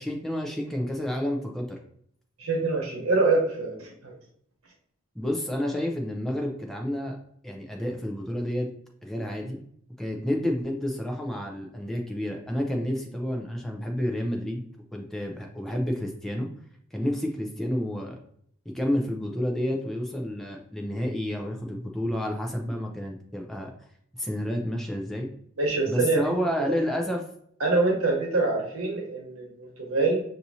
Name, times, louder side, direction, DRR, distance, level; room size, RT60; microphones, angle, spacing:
voice 1, 0.0-1.8 5.2-7.2 7.4-8.7 9.0-9.6 10.0-14.6 14.9-16.5 16.9-18.2 18.7-23.7 24.2-25.3 25.9-27.2, equal, ahead, 0 dB, 0.5 m, -30 dB
voice 2, 2.4-4.1 25.6-26.2 26.7-26.8 27.6-30.2, right 3 dB, 85° right, 0 dB, 1.0 m, -25 dB
5.9 x 2.7 x 2.7 m, 0.66 s
head